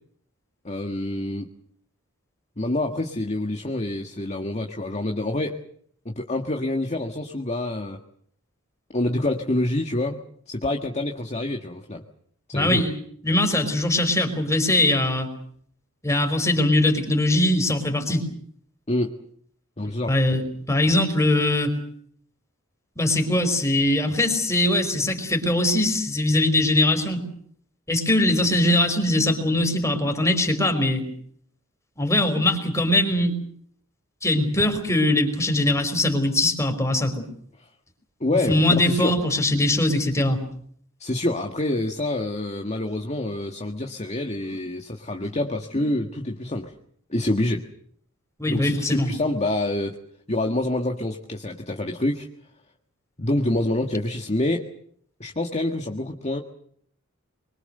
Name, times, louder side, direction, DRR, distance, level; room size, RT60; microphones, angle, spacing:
voice 1, 0.7-1.5 2.6-5.6 6.1-8.0 8.9-10.2 10.5-12.0 12.5-12.9 18.9-19.1 19.8-20.1 38.2-39.1 41.0-46.7 47.1-47.6 48.5-50.0 50.3-52.3 53.2-54.6 55.2-56.4, left 1 dB, 30° left, 4 dB, 1.7 m, -26 dB
voice 2, 12.5-12.9 13.2-15.3 16.0-18.2 20.1-21.7 23.0-27.2 27.9-31.1 32.0-33.4 34.2-37.3 38.5-40.4 45.7-45.8 48.4-49.1, left 1 dB, 15° left, 5 dB, 4.7 m, -21 dB
25.5 x 24.0 x 6.7 m, 0.63 s
head